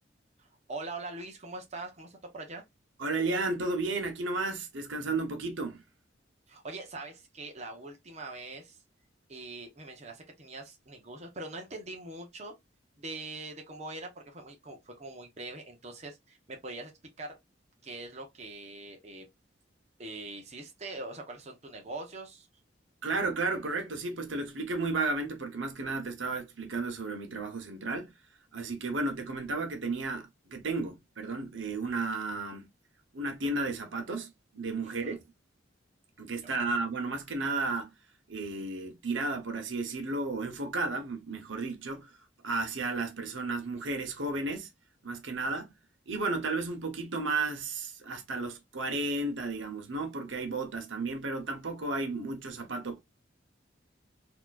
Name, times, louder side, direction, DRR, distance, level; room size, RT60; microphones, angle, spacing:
voice 1, 0.4-2.6 6.5-8.8 9.3-12.6 13.0-16.9 17.2-17.4 17.8-19.3 20.0-22.5 34.8-35.2, right 2 dB, 35° right, 1.0 m, -43 dB
voice 2, 3.0-5.8 23.0-28.1 28.5-32.7 33.1-35.2 36.2-37.9 38.3-44.7 45.0-45.7 46.1-53.0, right 3 dB, 85° right, 1.0 m, -33 dB
4.1 x 3.0 x 2.4 m
head